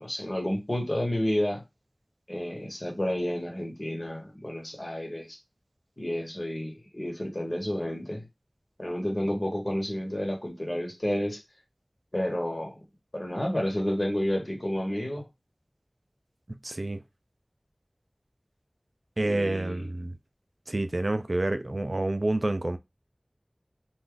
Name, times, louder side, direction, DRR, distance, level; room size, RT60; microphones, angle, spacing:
voice 1, 0.0-1.6 2.3-5.4 6.0-8.3 8.8-11.4 12.1-12.8 13.1-15.2 19.2-19.8, left 1 dB, 50° left, 1.3 m, -30 dB
voice 2, 16.6-17.0 19.2-20.2 20.7-22.8, right 2 dB, 60° right, 0.3 m, -28 dB
2.5 x 2.4 x 3.7 m
wide cardioid pair, 40°, 0 cm